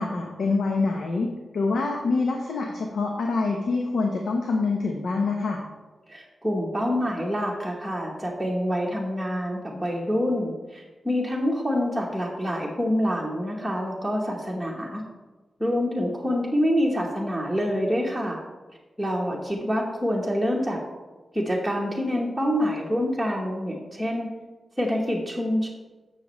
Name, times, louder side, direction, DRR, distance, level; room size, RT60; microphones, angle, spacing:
voice 1, 0.0-5.6, left 3 dB, 80° left, 1 dB, 0.9 m, -26 dB
voice 2, 6.1-15.0 15.6-18.4 19.0-20.8 21.3-24.3 24.8-25.7, equal, ahead, -4 dB, 1.1 m, -26 dB
12.0 x 6.9 x 3.1 m, 1.2 s
wide cardioid pair, 160°, 0 cm